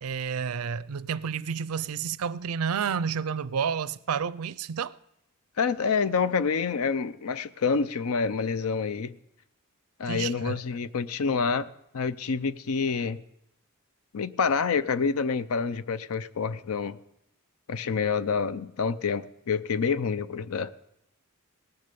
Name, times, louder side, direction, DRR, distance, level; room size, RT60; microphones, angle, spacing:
voice 1, 0.0-5.0 10.1-10.6, right 6 dB, 85° right, 0.5 m, -30 dB
voice 2, 5.6-9.1 10.0-11.7 11.9-13.2 14.1-17.0 17.7-20.7, left 5 dB, 80° left, 0.6 m, -27 dB
18.0 x 6.6 x 6.8 m
head